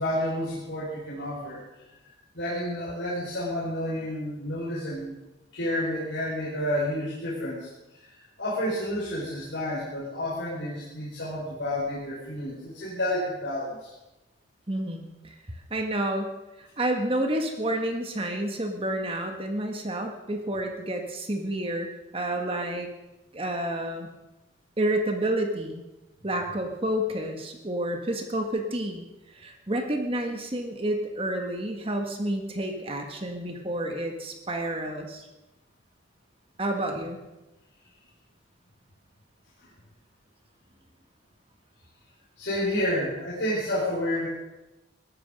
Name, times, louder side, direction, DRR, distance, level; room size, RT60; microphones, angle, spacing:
voice 1, 0.0-1.6 2.3-5.2 5.5-13.9 36.9-37.0 39.6-39.7 42.4-44.3, left 1 dB, 70° left, -7 dB, 5.1 m, -30 dB
voice 2, 14.7-16.3 16.6-22.9 23.3-24.1 24.8-25.8 26.2-29.0 29.3-35.3 36.6-37.2, right 1 dB, 30° right, 4 dB, 1.6 m, -30 dB
19.0 x 14.0 x 5.3 m, 1.0 s
head